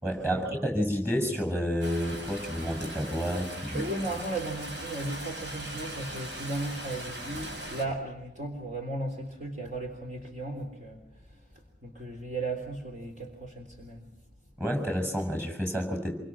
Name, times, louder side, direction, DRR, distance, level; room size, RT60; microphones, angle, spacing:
voice 1, 0.0-3.9 14.6-16.2, equal, 15° right, 5 dB, 6.8 m, -30 dB
sound 1, 1.8-7.8, right 1 dB, 85° right, 7.3 m, -39 dB
voice 2, 3.7-11.0 11.3-11.4 11.8-14.1, right 2 dB, 45° right, 3 dB, 3.7 m, -36 dB
27.5 x 24.5 x 6.2 m, 0.89 s
head